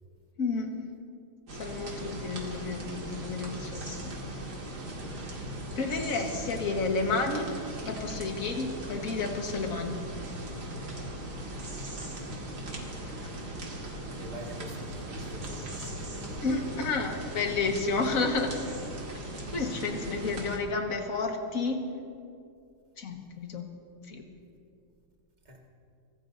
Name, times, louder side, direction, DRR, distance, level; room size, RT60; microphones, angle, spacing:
voice 1, 0.4-0.9 1.5-4.1 5.7-7.5 7.8-10.0 16.4-18.5 19.5-21.9 23.0-23.7 24.1-24.2, left 3 dB, 45° left, 3 dB, 1.6 m, -31 dB
sound 1, 1.5-20.6, right 1 dB, 50° right, 2.5 m, -39 dB
voice 2, 14.1-17.1 25.4-25.6, right 1 dB, 20° right, 0 dB, 1.6 m, -45 dB
24.5 x 17.0 x 2.6 m, 2.4 s
omnidirectional pair, 2.4 m